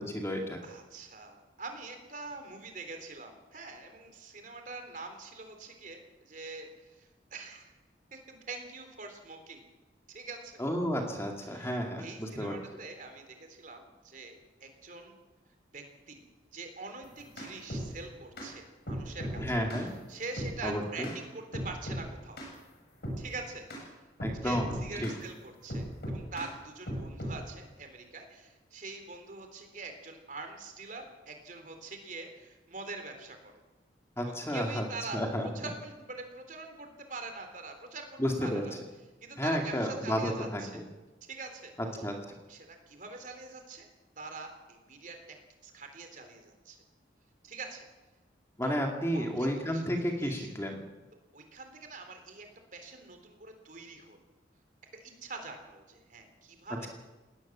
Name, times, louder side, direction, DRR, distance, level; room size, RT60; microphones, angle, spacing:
voice 1, 0.0-0.6 10.6-12.6 19.4-19.9 20.6-21.1 24.2-25.1 34.2-34.9 35.1-35.5 38.2-38.6 39.4-40.8 42.0-42.3 48.6-50.8, equal, 15° left, 2 dB, 2.4 m, -32 dB
voice 2, 0.6-7.8 8.1-9.7 10.1-10.6 11.5-15.2 15.7-16.2 16.5-19.4 19.7-22.4 23.2-23.7 24.4-33.5 34.2-35.2 35.5-38.8 39.2-40.8 41.3-41.7 42.5-43.9 44.2-45.4 45.6-46.8 47.4-47.9 48.6-48.8 49.1-49.9 50.2-50.5 51.3-52.5 52.7-54.2 55.0-56.9, right 3 dB, 45° right, 6 dB, 3.7 m, -44 dB
sound 1, 17.0-17.9 18.4-18.5 18.9-19.9 20.4-20.6 21.0-21.2 21.5-22.1 22.4-22.5 23.0-23.2 23.7-23.8 24.2-25.2 25.7-26.5 26.9-27.4, equal, 60° left, 7.2 m, -37 dB
19.0 x 19.0 x 7.5 m, 1.2 s
head